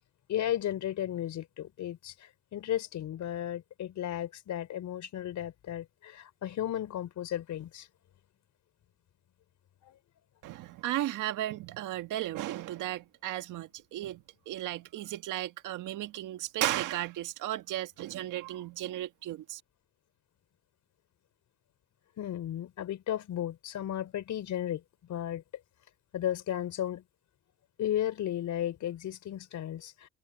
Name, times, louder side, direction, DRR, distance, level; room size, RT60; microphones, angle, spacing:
voice 1, 0.3-7.9 9.8-9.9 22.2-24.8 25.1-25.4 26.1-27.0 27.8-30.1, left 11 dB, 75° left, 4.7 m, -34 dB
voice 2, 10.4-19.6, right 14 dB, 90° right, 1.7 m, -35 dB
cardioid pair, 90°, 30 cm